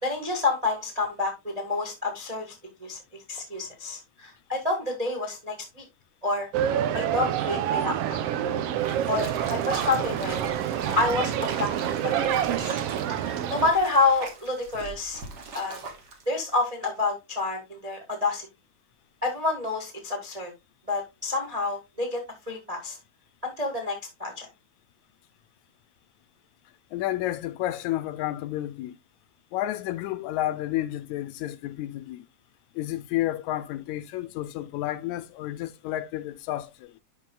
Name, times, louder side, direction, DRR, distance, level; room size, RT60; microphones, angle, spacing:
voice 1, 0.0-2.5 2.8-3.0 3.3-5.8 6.2-6.5 6.9-7.9 9.1-10.4 10.9-11.7 12.0-12.7 13.2-15.2 15.5-15.8 16.3-18.5 19.2-20.5 20.9-22.2 22.5-23.0 23.4-24.5, left 3 dB, 30° right, 0.6 m, -28 dB
sound 1, 6.5-13.7, right 10 dB, 75° right, 1.5 m, -27 dB
sound 2, 8.8-16.2, right 4 dB, 55° right, 1.2 m, -41 dB
voice 2, 26.9-29.0 29.5-32.3 32.8-36.9, left 14 dB, 80° left, 1.9 m, -31 dB
11.0 x 4.8 x 2.3 m
omnidirectional pair, 3.4 m